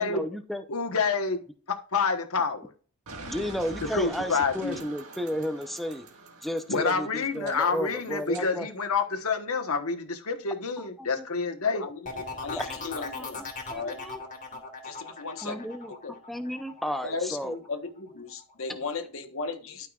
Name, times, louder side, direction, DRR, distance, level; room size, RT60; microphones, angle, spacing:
voice 1, 0.0-0.7 3.2-6.1 6.4-8.7 10.8-11.2 12.6-12.8 13.1-14.2 15.4-17.6, equal, ahead, 0.7 m, -33 dB
voice 2, 0.7-1.4 1.9-2.7 3.8-4.8 6.7-11.8, left 4 dB, 85° left, 1.3 m, -28 dB
sound 1, 3.1-8.5, right 2 dB, 85° right, 1.8 m, -44 dB
voice 3, 11.7-14.0 14.5-16.1 17.0-19.9, left 4 dB, 65° left, 1.2 m, -37 dB
sound 2, 12.1-17.7 18.1-18.5, left 4 dB, 35° left, 2.1 m, -39 dB
12.5 x 5.7 x 2.4 m
head